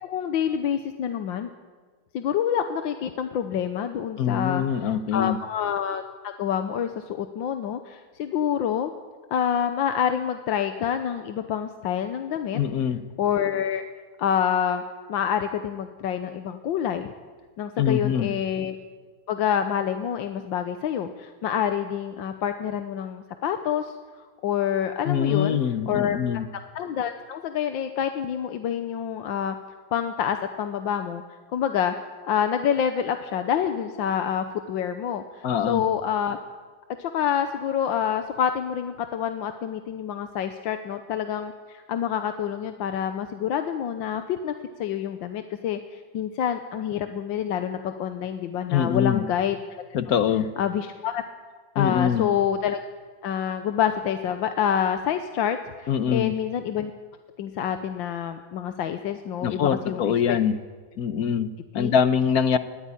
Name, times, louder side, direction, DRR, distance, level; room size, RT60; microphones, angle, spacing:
voice 1, 0.0-1.5 2.1-8.9 9.3-12.6 13.2-13.8 14.2-14.8 15.1-17.1 17.6-18.8 19.3-23.9 24.4-25.6 25.9-26.2 26.7-29.6 29.9-31.2 31.5-31.9 32.2-36.4 37.0-44.5 44.8-49.8 50.6-51.2 51.7-52.8 53.2-56.9 57.4-60.4 61.7-61.9, left 9 dB, 75° left, 8 dB, 1.6 m, -27 dB
voice 2, 4.2-5.4 12.5-13.0 17.8-18.3 25.0-26.5 35.4-35.8 48.7-49.2 49.9-50.5 51.8-52.3 55.9-56.3 59.4-60.6 61.0-62.6, left 8 dB, 55° left, 12 dB, 1.3 m, -24 dB
20.5 x 14.0 x 9.9 m, 1.5 s
omnidirectional pair, 2.1 m